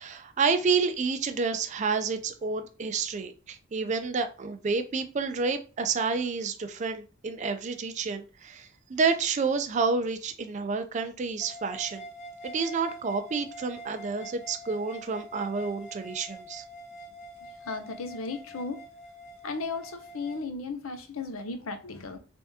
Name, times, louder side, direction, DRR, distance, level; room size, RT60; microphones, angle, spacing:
voice 1, 0.0-12.0 12.4-16.6, right 4 dB, 35° right, 0.4 m, -29 dB
sound 1, 11.4-20.4, right 1 dB, 35° left, 0.7 m, -45 dB
voice 2, 17.4-18.8 19.4-22.2, left 4 dB, 80° left, 0.6 m, -35 dB
3.4 x 3.4 x 2.7 m
head